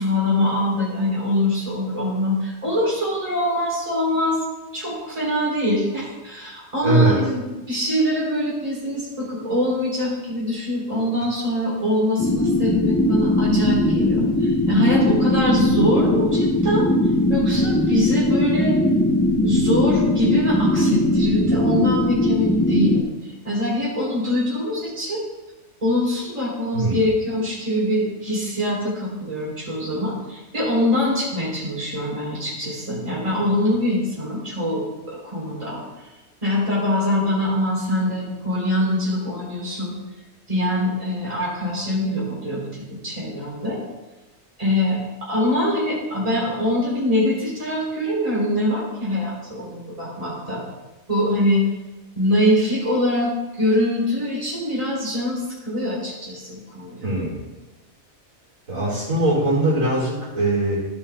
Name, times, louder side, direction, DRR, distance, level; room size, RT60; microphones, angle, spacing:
voice 1, 0.0-4.4 4.7-7.4 7.7-16.9 17.3-18.8 19.4-25.2 25.8-35.8 36.4-39.9 40.5-43.8 44.6-50.6 51.1-51.7 52.1-53.3 53.6-57.0, left 1 dB, 25° right, -7 dB, 3.4 m, -23 dB
voice 2, 6.8-7.2 26.7-27.0 57.0-57.4 58.7-60.8, right 1 dB, 70° right, -7 dB, 3.8 m, -21 dB
sound 1, 12.2-23.0, left 1 dB, 15° left, 0.6 m, -20 dB
14.5 x 5.6 x 3.4 m, 1.1 s
omnidirectional pair, 1.4 m